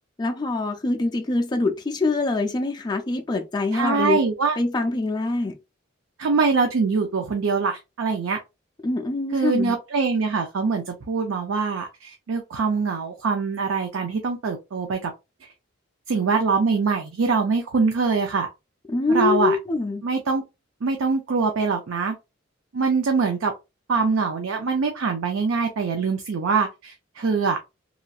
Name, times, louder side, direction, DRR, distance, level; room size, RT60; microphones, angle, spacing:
voice 1, 0.2-4.2 4.6-5.5 8.8-9.7 18.9-20.0, left 3 dB, 20° left, 0.4 m, -24 dB
voice 2, 3.7-4.6 6.2-8.4 9.3-15.1 16.1-18.5 19.1-19.6 20.0-20.4 20.8-22.2 22.7-23.5 23.9-27.6, right 4 dB, 90° right, 0.5 m, -23 dB
3.0 x 2.6 x 2.3 m
head